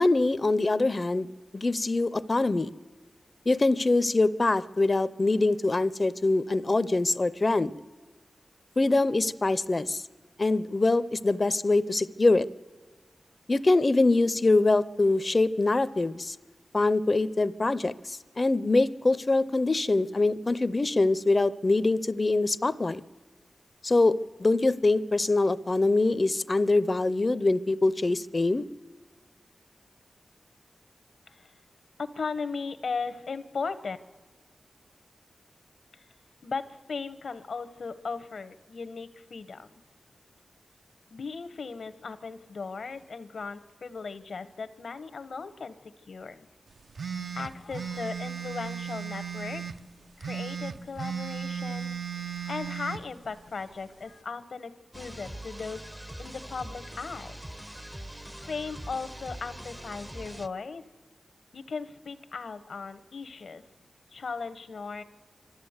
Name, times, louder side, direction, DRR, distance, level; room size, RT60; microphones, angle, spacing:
voice 1, 0.0-2.7 3.5-7.7 8.8-10.0 10.4-12.5 13.5-16.4 16.7-23.0 23.8-24.1 24.4-28.6, left 2 dB, 40° left, 16 dB, 0.5 m, -24 dB
voice 2, 32.0-34.0 35.9-36.0 36.4-39.8 41.1-46.5 47.3-49.6 50.2-51.9 52.4-55.8 56.2-57.4 58.5-60.8 61.5-63.6 64.1-65.0, left 4 dB, 80° left, 11 dB, 0.8 m, -37 dB
sound 1, 47.0-49.8 50.2-53.0, right 7 dB, 70° right, 0.7 m, -35 dB
sound 2, 54.9-60.5, right 1 dB, 10° right, 0.6 m, -43 dB
25.5 x 13.0 x 8.0 m, 1.4 s
wide cardioid pair, 70°, 0 cm